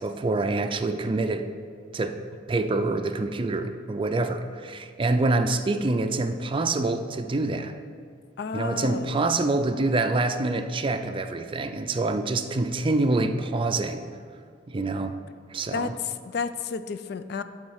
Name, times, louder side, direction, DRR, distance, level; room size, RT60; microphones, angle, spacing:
voice 1, 0.0-1.5 1.9-2.2 2.5-7.8 8.5-14.0 14.7-15.2 15.5-15.9, right 2 dB, 30° right, 8 dB, 0.4 m, -26 dB
voice 2, 8.4-9.2 15.7-17.4, left 5 dB, 60° left, 12 dB, 0.4 m, -31 dB
11.5 x 3.9 x 4.7 m, 2.2 s
head